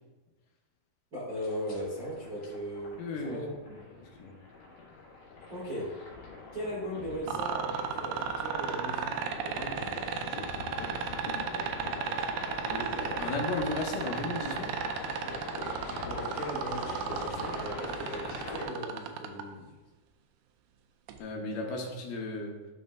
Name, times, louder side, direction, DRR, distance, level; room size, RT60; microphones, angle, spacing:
voice 1, 1.1-3.5 5.5-6.0 6.5-10.1 15.2-15.4 16.0-19.7, equal, 45° right, -8 dB, 1.2 m, -38 dB
sound 1, 1.3-18.6, left 3 dB, 60° left, 2.9 m, -42 dB
voice 2, 3.0-3.8 4.2-4.4 12.6-14.7 21.2-22.7, left 2 dB, 80° left, 0 dB, 2.9 m, -35 dB
sound 2, 7.3-19.4 21.1-21.2, right 8 dB, 90° right, 2.6 m, -34 dB
12.0 x 5.2 x 2.3 m, 1.1 s
omnidirectional pair, 4.5 m